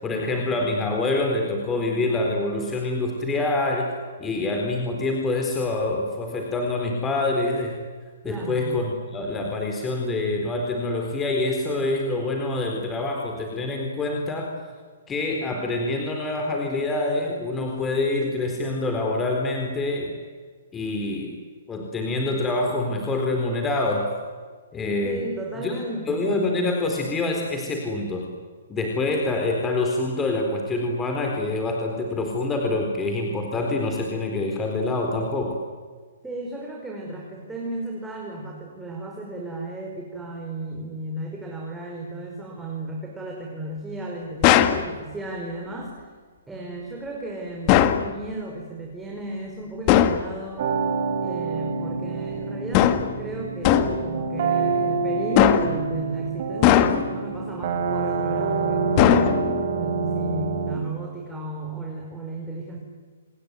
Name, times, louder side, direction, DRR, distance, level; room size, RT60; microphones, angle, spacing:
voice 1, 0.0-3.9 4.2-7.9 8.2-8.9 9.1-14.5 15.1-20.1 20.7-21.4 21.7-24.1 24.7-25.2 25.6-25.7 26.1-28.3 28.7-35.6, left 2 dB, 15° left, 2 dB, 4.1 m, -26 dB
voice 2, 8.2-8.7 25.0-26.4 36.2-46.1 46.5-50.7 51.2-59.3 59.7-62.8, right 2 dB, 5° right, -1 dB, 5.0 m, -34 dB
sound 1, 44.4-44.9 47.7-48.1 49.9-50.3 52.7-53.2 53.6-54.0 55.4-55.8 56.6-57.2 59.0-59.6, left 11 dB, 35° left, 1.9 m, -18 dB
sound 2, 50.6-60.8, right 4 dB, 50° right, 4.3 m, -27 dB
29.0 x 20.0 x 9.5 m, 1.5 s
hypercardioid pair, 130°, 0 cm